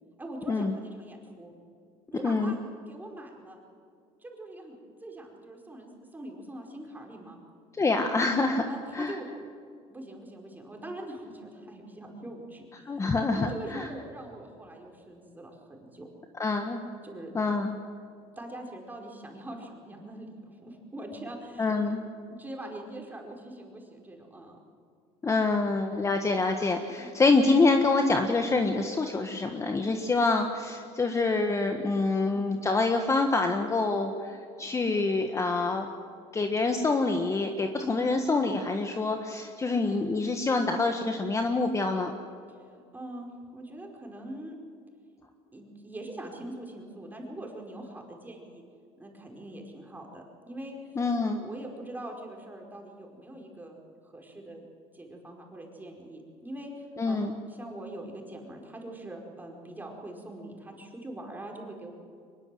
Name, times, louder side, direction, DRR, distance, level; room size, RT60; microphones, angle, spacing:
voice 1, 0.2-1.5 2.1-2.6 2.9-3.6 4.2-7.4 8.7-9.3 9.9-16.1 17.0-17.3 18.4-24.6 27.0-27.2 32.3-32.4 37.8-38.0 42.5-42.6 42.9-44.6 45.5-48.6 49.0-50.8 51.0-53.8 54.0-54.6 54.9-61.9, right 1 dB, 10° right, 1 dB, 4.9 m, -43 dB
voice 2, 2.2-2.6 7.8-8.7 8.9-9.2 12.8-13.9 16.4-16.8 17.3-17.8 21.6-22.0 25.2-35.9 36.3-42.1 50.9-51.4 57.0-57.4, left 3 dB, 20° left, 5 dB, 1.5 m, -26 dB
23.0 x 21.5 x 7.8 m, 2.4 s
supercardioid pair, 115°, 14 cm